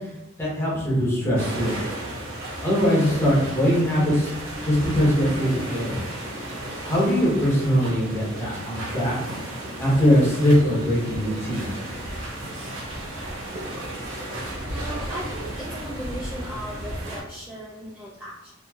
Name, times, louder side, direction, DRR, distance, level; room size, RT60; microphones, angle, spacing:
voice 1, 0.4-1.7 2.6-4.3 4.6-6.0 6.8-9.1 9.8-11.7, equal, 15° left, -7 dB, 0.9 m, -21 dB
sound 1, 1.4-17.2, right 1 dB, 80° right, 0.9 m, -34 dB
voice 2, 14.4-18.5, equal, 5° right, -5 dB, 0.3 m, -37 dB
3.0 x 2.5 x 2.3 m, 0.93 s
head